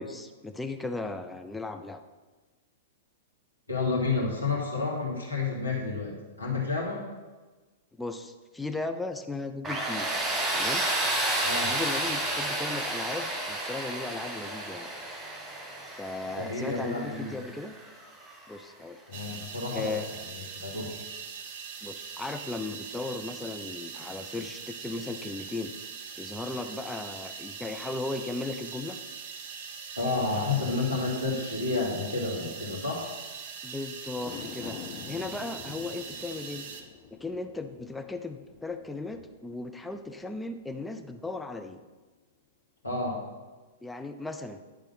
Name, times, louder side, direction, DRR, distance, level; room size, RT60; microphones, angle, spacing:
voice 1, 0.0-2.0 8.0-10.1 10.5-10.8 11.7-14.9 15.9-17.7 18.5-19.0 19.7-20.1 21.8-25.7 26.2-29.0 33.6-34.8 35.1-36.7 37.2-41.8 43.8-44.6, left 3 dB, 5° left, 6 dB, 0.5 m, -36 dB
voice 2, 3.7-7.0 11.4-11.7 16.4-17.3 19.1-20.0 20.3-21.0 30.0-33.1 42.8-43.2, left 3 dB, 85° left, -4 dB, 2.5 m, -30 dB
Tools, 9.6-18.4, right 1 dB, 15° right, 1.2 m, -31 dB
sound 1, 19.1-36.8, right 6 dB, 50° right, 0.9 m, -42 dB
sound 2, 34.1-40.6 41.0-41.1, left 8 dB, 35° left, 1.0 m, -47 dB
11.0 x 3.8 x 5.9 m, 1.3 s
figure-of-eight pair, 105°, 0 cm